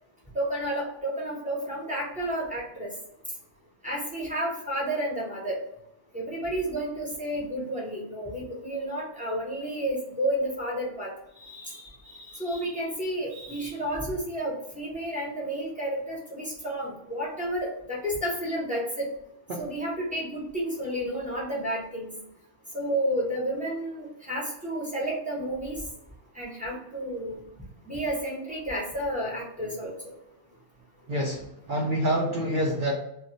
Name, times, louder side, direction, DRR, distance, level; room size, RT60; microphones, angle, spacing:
voice 1, 0.3-2.9 3.8-5.6 6.1-11.1 11.4-19.1 19.6-22.1 22.7-25.8 26.4-27.4 27.9-29.9, right 1 dB, 10° right, -4 dB, 0.7 m, -31 dB
voice 2, 31.1-32.9, equal, 55° right, -2 dB, 0.6 m, -27 dB
2.3 x 2.1 x 3.8 m, 0.78 s
omnidirectional pair, 1.2 m